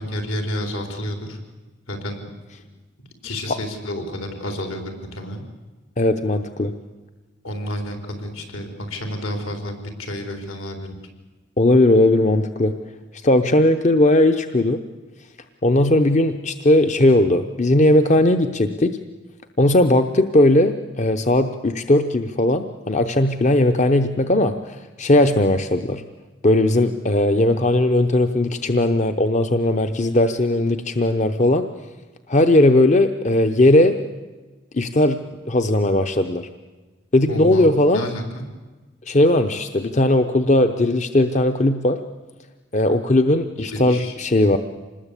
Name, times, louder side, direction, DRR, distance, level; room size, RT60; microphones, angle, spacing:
voice 1, 0.0-1.4 1.9-2.2 3.2-5.4 7.4-11.0 37.3-38.4 43.6-44.1, left 1 dB, 75° left, 4 dB, 4.3 m, -30 dB
voice 2, 6.0-6.7 11.6-12.7 13.2-14.8 15.6-19.0 19.6-26.0 26.4-31.6 32.3-34.0 34.7-35.2 35.5-36.5 37.1-38.1 39.1-42.0 42.7-44.6, left 1 dB, 35° left, 8 dB, 0.8 m, -18 dB
26.0 x 20.0 x 8.4 m, 1.3 s
head